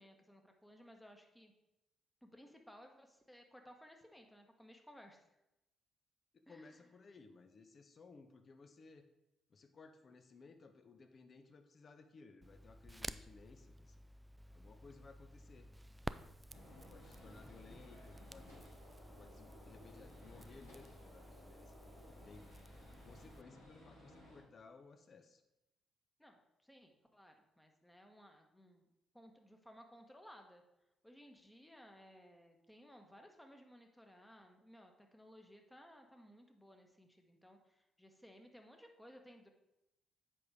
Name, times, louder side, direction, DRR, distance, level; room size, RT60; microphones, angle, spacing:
voice 1, 0.0-1.5 2.2-5.2 6.5-6.8 26.2-28.8 29.1-30.6 31.0-39.5, equal, 5° left, 3 dB, 1.3 m, -60 dB
voice 2, 6.3-9.1 9.5-14.1 14.5-15.7 16.9-18.6 19.0-21.8 22.2-22.5 23.0-25.4, left 4 dB, 40° left, 8 dB, 0.8 m, -59 dB
Crackle, 12.4-23.4, right 1 dB, 10° right, 0.3 m, -52 dB
Gunshot gunfire, 16.5-24.4, left 1 dB, 75° left, 2.7 m, -59 dB
7.7 x 5.4 x 4.8 m, 0.92 s
figure-of-eight pair, 45°, 0 cm